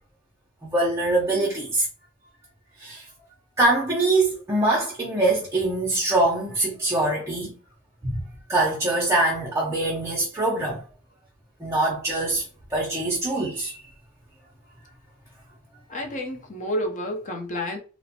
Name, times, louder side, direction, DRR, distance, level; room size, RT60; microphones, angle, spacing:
voice 1, 0.6-1.9 2.8-3.0 3.6-7.5 8.0-8.2 8.5-10.8 11.6-12.4 12.7-13.7, right 2 dB, 15° right, 0.5 m, -23 dB
voice 2, 15.9-17.8, left 1 dB, 35° left, 0.6 m, -30 dB
3.0 x 2.0 x 2.8 m
head